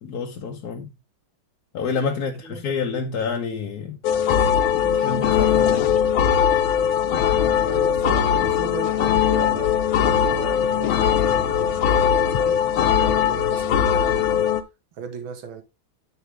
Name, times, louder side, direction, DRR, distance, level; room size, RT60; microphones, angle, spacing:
voice 1, 0.0-0.9 1.7-4.0 4.7-5.9, left 5 dB, 60° left, 1.3 m, -28 dB
voice 2, 2.2-2.6 7.6-14.4 15.0-15.6, right 6 dB, 80° right, 2.2 m, -35 dB
sound 1, 4.0-14.6, left 9 dB, 85° left, 1.7 m, -20 dB
9.9 x 5.8 x 3.3 m
omnidirectional pair, 2.1 m